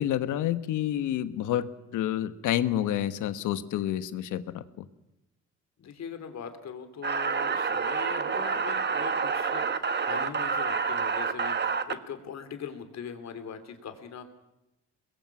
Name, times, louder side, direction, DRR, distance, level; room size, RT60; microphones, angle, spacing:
voice 1, 0.0-4.8, left 12 dB, 85° left, 12 dB, 1.3 m, -29 dB
voice 2, 5.8-14.3, left 7 dB, 60° left, 8 dB, 3.1 m, -41 dB
sound 1, 7.0-11.9, right 5 dB, 35° right, 1.5 m, -28 dB
24.0 x 21.5 x 6.1 m, 0.93 s
cardioid pair, 90°, 30 cm